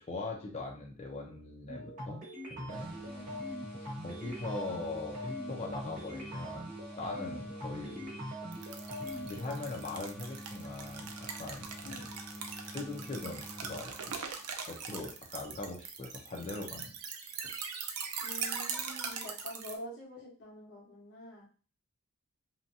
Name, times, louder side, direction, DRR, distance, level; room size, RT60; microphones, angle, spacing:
voice 1, 0.1-2.2 2.5-2.9 3.9-6.7 7.0-8.1 9.1-12.0 12.6-14.2 14.7-16.9 17.4-17.5, left 3 dB, 30° left, 0 dB, 0.5 m, -41 dB
sound 1, 1.7-9.6, equal, 35° right, 1.2 m, -42 dB
sound 2, 2.7-14.4, equal, 10° left, 1.2 m, -47 dB
voice 2, 3.0-3.5 11.8-12.1 18.2-21.5, equal, 50° left, -5 dB, 1.1 m, -47 dB
sound 3, 8.5-19.8, right 6 dB, 90° right, 0.5 m, -41 dB
2.8 x 2.2 x 2.6 m, 0.37 s
head